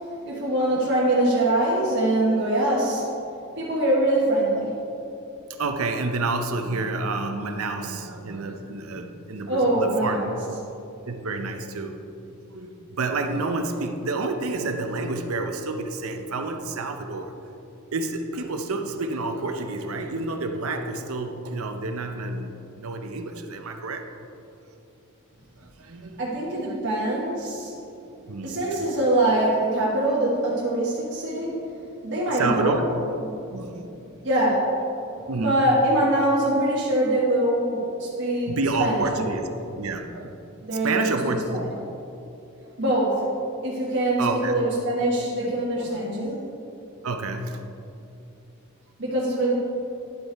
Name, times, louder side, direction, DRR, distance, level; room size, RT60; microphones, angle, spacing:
voice 1, 0.2-3.1 3.6-4.7 9.5-10.3 26.2-27.7 28.4-31.5 32.0-32.8 33.2-33.3 34.2-34.7 35.4-38.5 38.8-39.0 40.6-41.0 41.5-41.6 42.8-43.2 43.6-46.4 49.0-49.6, right 1 dB, 55° right, -7 dB, 1.3 m, -23 dB
voice 2, 5.6-10.3 11.1-17.3 17.9-24.1 25.6-26.2 26.5-26.9 28.3-28.5 32.3-32.8 33.5-33.9 35.3-35.5 38.5-39.5 39.8-40.4 40.7-41.6 44.2-44.6 45.4-45.5 45.8-46.0 47.0-47.6, right 3 dB, 75° right, 5 dB, 0.7 m, -29 dB
10.5 x 5.5 x 4.6 m, 2.8 s
head